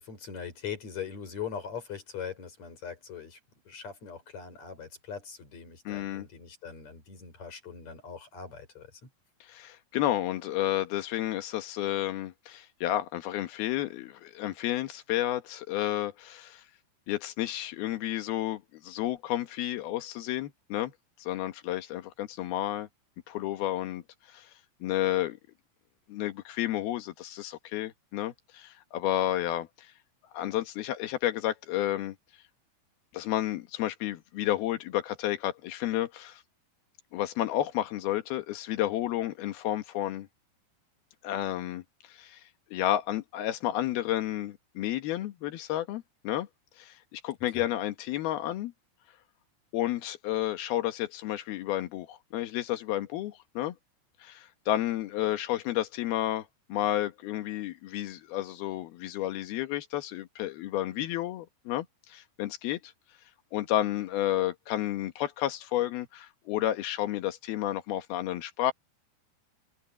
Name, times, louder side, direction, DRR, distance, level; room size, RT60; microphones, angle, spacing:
voice 1, 0.0-3.4 3.7-9.1 47.5-47.6, left 7 dB, 45° left, 5.9 m, -41 dB
voice 2, 5.9-6.3 9.4-16.6 17.1-20.9 21.2-22.9 23.3-24.0 24.3-24.5 24.8-25.4 26.1-29.9 30.3-32.2 33.1-36.4 37.1-40.3 41.2-41.8 42.1-42.4 42.7-46.5 46.8-48.7 49.7-53.8 54.2-62.9 63.5-68.7, left 13 dB, 70° left, 3.2 m, -31 dB
open air
omnidirectional pair, 4.7 m